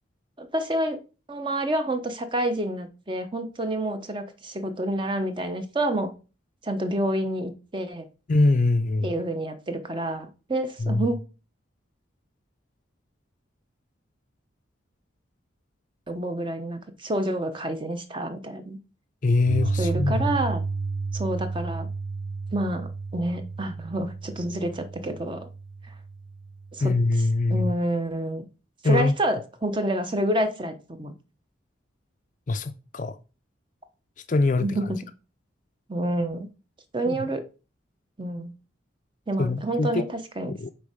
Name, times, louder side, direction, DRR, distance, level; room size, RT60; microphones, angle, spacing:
voice 1, 0.4-1.0 1.3-6.1 6.6-8.0 9.0-11.2 16.1-18.8 19.8-20.6 21.1-21.9 22.5-25.5 26.7-26.9 27.5-28.5 28.8-31.1 34.6-35.0 35.9-36.5 36.9-37.4 38.2-38.5 39.3-40.5, right 1 dB, 25° right, 0.9 m, -28 dB
voice 2, 8.3-9.1 10.8-11.1 19.2-20.3 26.8-27.7 28.8-29.1 32.5-33.2 34.3-34.7 37.1-37.3 39.4-40.0 40.5-40.7, left 2 dB, 40° left, 0.5 m, -23 dB
Piano, 19.5-27.6, right 4 dB, 70° right, 0.4 m, -32 dB
7.0 x 4.5 x 5.0 m
head